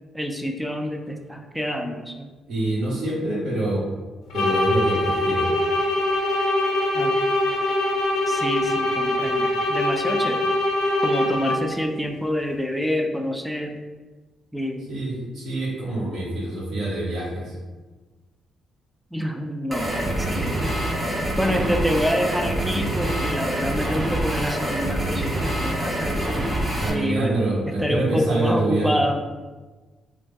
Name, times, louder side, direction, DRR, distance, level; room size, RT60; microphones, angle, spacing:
voice 1, 0.1-2.2 6.9-7.1 8.3-10.5 11.0-13.8 14.5-14.9 19.1-20.6 21.4-26.3 26.9-27.4 27.8-29.2, equal, 5° right, 4 dB, 0.3 m, -27 dB
voice 2, 2.5-3.8 4.3-5.5 14.9-17.5 26.8-28.9, right 2 dB, 65° right, -6 dB, 1.2 m, -26 dB
sound 1, 4.3-11.8, left 1 dB, 80° left, 0.6 m, -23 dB
sound 2, 19.7-26.9, right 1 dB, 20° right, 0.7 m, -25 dB
3.2 x 2.1 x 3.4 m, 1.3 s
cardioid pair, 90°, 0 cm